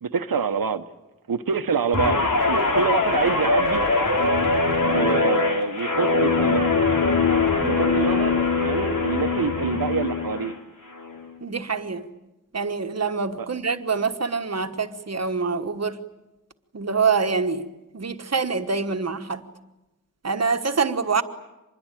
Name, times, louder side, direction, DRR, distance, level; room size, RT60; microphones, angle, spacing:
voice 1, 0.0-0.8 1.3-3.8 4.9-6.7 7.6-10.5 13.4-13.5, right 6 dB, 90° right, 1.1 m, -26 dB
Guitar, 1.9-10.5 10.9-11.2, left 3 dB, 70° left, 3.5 m, -22 dB
voice 2, 11.4-12.1 12.5-16.0 16.7-17.7 17.9-19.5 20.2-21.2, right 5 dB, 50° right, 1.4 m, -25 dB
25.5 x 21.5 x 9.1 m
wide cardioid pair, 100°, 34 cm